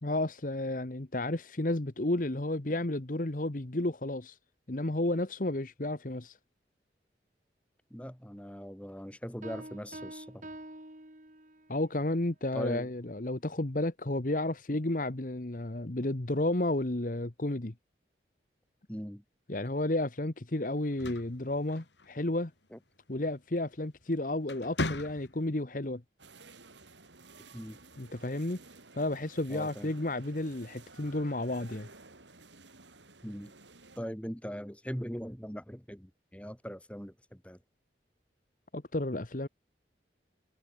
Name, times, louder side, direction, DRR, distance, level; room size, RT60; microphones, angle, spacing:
voice 1, 0.0-4.4 4.7-6.4 11.7-17.7 19.5-22.5 23.1-26.0 28.0-28.6 29.0-31.9 38.7-39.5, left 1 dB, 45° left, 1.2 m, -32 dB
voice 2, 7.9-10.4 12.5-12.9 18.9-19.2 22.7-22.8 27.5-27.8 29.5-29.9 33.2-33.5 34.0-37.6, equal, 5° left, 5.7 m, -40 dB
sound 1, 9.4-11.8, right 1 dB, 45° right, 4.0 m, -46 dB
sound 2, 20.8-22.3 23.8-24.0 24.4-25.6, left 2 dB, 75° left, 3.5 m, -37 dB
sound 3, 26.2-34.0, right 3 dB, 85° right, 5.9 m, -54 dB
head